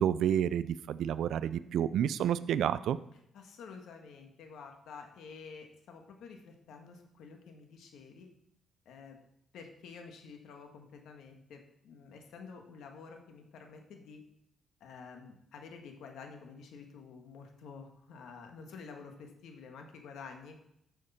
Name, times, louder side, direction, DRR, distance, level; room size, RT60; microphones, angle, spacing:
voice 1, 0.0-3.0, right 9 dB, 80° right, 14 dB, 0.4 m, -29 dB
voice 2, 3.3-8.3 8.9-9.2 9.5-14.2 14.8-20.6, left 5 dB, 85° left, 4 dB, 1.6 m, -50 dB
12.0 x 6.6 x 4.3 m, 0.76 s
cardioid pair, 100°, 0 cm